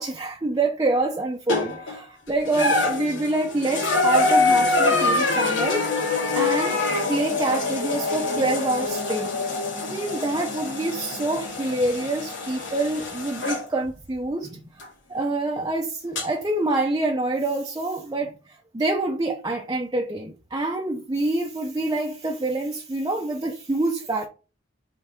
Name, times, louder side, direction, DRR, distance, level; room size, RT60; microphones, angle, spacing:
voice 1, 0.0-5.9 6.4-9.3 9.9-14.6 15.1-24.3, right 2 dB, 20° right, 0.7 m, -26 dB
sound 1, 1.5-1.9 2.4-13.6 14.8-14.9 16.1-16.2, left 3 dB, 85° left, 2.6 m, -25 dB
5.5 x 3.9 x 5.9 m
head